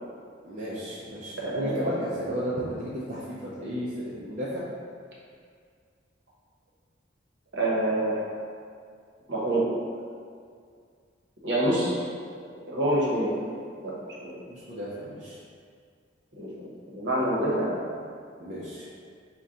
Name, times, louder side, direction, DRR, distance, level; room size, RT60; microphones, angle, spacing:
voice 1, 0.4-4.6 14.5-15.4 18.4-18.9, equal, 40° right, -8 dB, 0.5 m, -34 dB
voice 2, 1.4-1.9 7.5-8.3 9.3-9.7 11.4-12.0 12.7-13.3 13.8-13.9 14.2-14.4 16.3-17.8, right 1 dB, 65° right, -6 dB, 0.9 m, -26 dB
3.9 x 2.2 x 3.7 m, 2.2 s
head